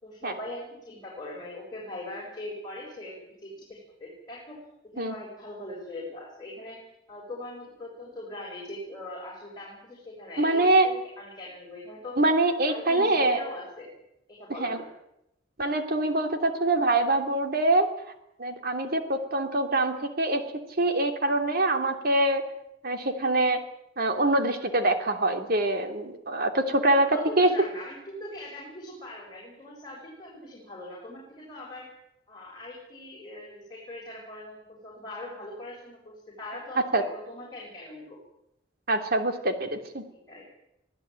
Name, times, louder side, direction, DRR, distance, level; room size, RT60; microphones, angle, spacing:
voice 1, 0.0-4.6 4.8-6.8 7.1-12.2 12.7-13.9 14.3-14.9 26.9-31.9 32.3-38.2 40.1-40.4, left 1 dB, 25° left, -3 dB, 6.7 m, -41 dB
voice 2, 10.4-10.9 12.2-13.4 14.6-14.8 15.6-17.9 18.4-20.4 20.8-22.5 22.8-23.6 24.0-27.5 36.9-37.0 38.9-40.0, right 2 dB, 55° right, 6 dB, 2.9 m, -24 dB
25.0 x 16.0 x 9.1 m, 0.83 s
head